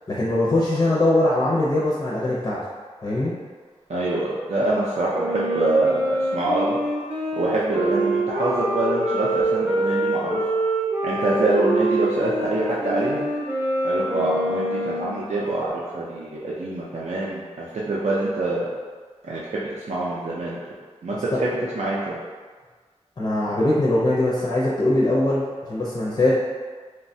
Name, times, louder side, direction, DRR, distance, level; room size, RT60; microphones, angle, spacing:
voice 1, 0.1-2.6 3.0-3.3 21.3-21.4 23.2-25.4 25.7-26.3, left 1 dB, 40° left, -6 dB, 0.5 m, -21 dB
voice 2, 3.9-6.8 7.3-10.4 11.0-13.3 13.8-15.7 15.9-18.7 19.2-20.6 21.0-22.2, right 2 dB, 65° right, -7 dB, 0.4 m, -25 dB
Wind instrument woodwind instrument, 5.1-15.2, right 1 dB, 15° right, 0.6 m, -25 dB
3.1 x 2.2 x 2.6 m, 1.5 s
wide cardioid pair, 85°, 12 cm